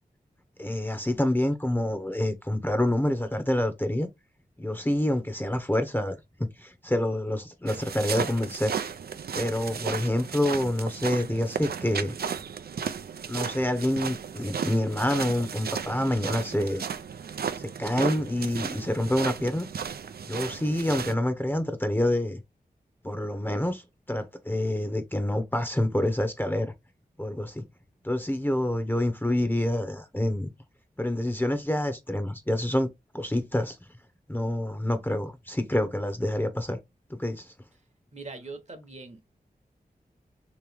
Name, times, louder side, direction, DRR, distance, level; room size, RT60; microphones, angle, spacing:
voice 1, 0.6-4.1 4.6-8.7 9.3-12.1 13.3-16.8 17.6-19.7 20.3-22.4 23.0-23.8 24.1-26.7 27.2-27.7 28.0-30.5 31.0-32.9 33.1-33.8 34.3-36.8 37.1-37.5, left 1 dB, 10° left, 0.8 m, -27 dB
sound 1, 7.7-21.1, right 7 dB, 75° right, 0.5 m, -34 dB
voice 2, 38.1-39.2, right 3 dB, 45° right, 1.0 m, -41 dB
3.2 x 3.1 x 3.4 m
cardioid pair, 50°, 16 cm